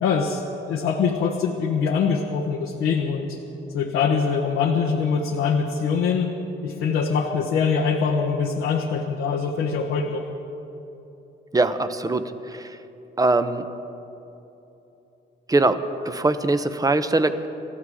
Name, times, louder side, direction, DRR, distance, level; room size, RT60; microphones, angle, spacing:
voice 1, 0.0-3.4 3.7-6.3 6.6-10.2, left 5 dB, 90° left, 1 dB, 1.3 m, -23 dB
voice 2, 11.5-12.2 13.2-13.6 15.5-15.8 16.1-17.5, right 2 dB, 20° right, 10 dB, 0.9 m, -21 dB
28.0 x 13.5 x 3.7 m, 3.0 s
cardioid pair, 90°, 20 cm